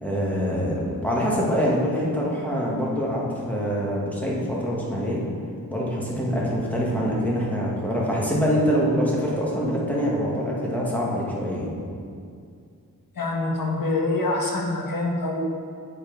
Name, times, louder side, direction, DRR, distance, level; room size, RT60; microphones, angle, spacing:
voice 1, 0.0-5.2 5.7-11.7, equal, 5° left, -5 dB, 1.7 m, -25 dB
voice 2, 13.1-15.5, left 2 dB, 75° left, -1 dB, 1.4 m, -25 dB
7.6 x 6.2 x 5.2 m, 2.3 s
wide cardioid pair, 105°, 35 cm